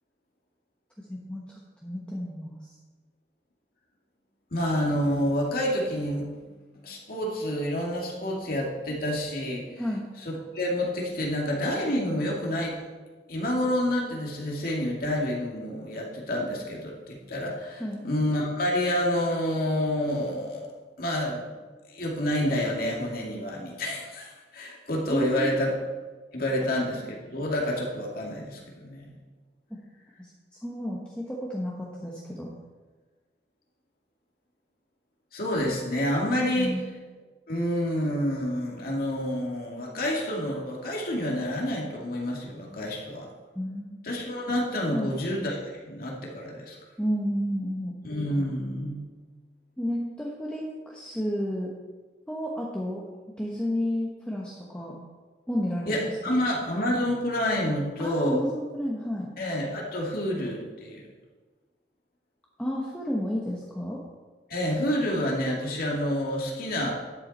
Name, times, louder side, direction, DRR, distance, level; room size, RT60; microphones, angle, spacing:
voice 1, 1.0-2.6 9.8-10.1 17.8-18.0 25.1-25.6 29.7-29.8 30.2-30.3 30.6-32.5 36.6-36.8 43.5-43.9 44.9-45.1 47.0-47.9 49.8-51.7 52.3-53.0 53.4-55.0 55.5-56.4 58.0-59.3 62.6-64.0, equal, 5° left, -4 dB, 1.1 m, -31 dB
voice 2, 4.5-6.3 6.8-9.7 10.2-12.8 13.3-20.7 21.0-21.5 21.9-25.7 26.3-29.1 35.3-36.7 37.5-43.3 44.0-45.6 45.9-46.8 48.0-49.0 55.9-58.4 59.4-61.0 64.5-66.9, left 1 dB, 55° left, -2 dB, 2.4 m, -28 dB
11.5 x 8.6 x 4.3 m, 1.3 s
head